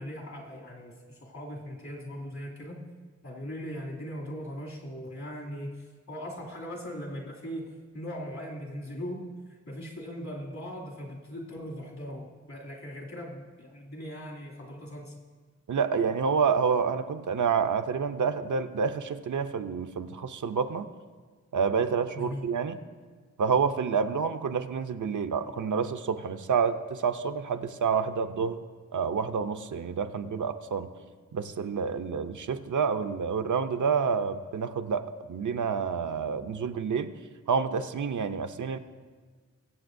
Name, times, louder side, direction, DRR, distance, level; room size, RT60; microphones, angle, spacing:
voice 1, 0.0-2.8 3.2-15.1 22.1-22.5, equal, 65° left, -3 dB, 2.5 m, -39 dB
voice 2, 15.7-20.9 21.5-22.8 23.4-28.6 28.9-30.9 31.3-37.1 37.5-38.8, right 6 dB, 80° right, 9 dB, 0.6 m, -28 dB
22.5 x 7.7 x 2.6 m, 1.5 s
wide cardioid pair, 95°, 30 cm